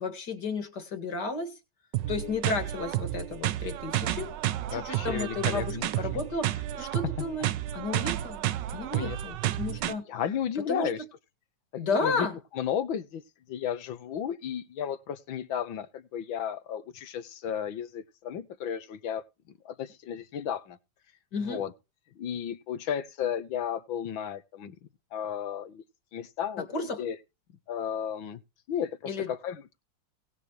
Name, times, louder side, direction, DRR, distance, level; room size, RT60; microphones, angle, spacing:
voice 1, 0.0-1.6 2.1-4.3 4.7-7.5 7.7-8.4 8.7-10.1 10.7-10.9 11.8-12.3 21.3-21.6 26.7-27.0 29.1-29.3, left 3 dB, 60° left, 2.6 m, -32 dB
sound 1, 1.9-9.9, right 13 dB, 70° right, 1.3 m, -31 dB
voice 2, 4.7-5.8 6.1-6.2 7.2-7.3 8.9-9.2 10.1-11.0 11.7-12.3 12.5-13.2 13.5-19.2 19.7-20.8 21.4-21.7 22.2-24.8 25.1-25.8 26.1-27.2 27.7-28.4 28.7-29.8, left 9 dB, 85° left, 1.9 m, -33 dB
19.0 x 6.9 x 3.1 m
omnidirectional pair, 2.1 m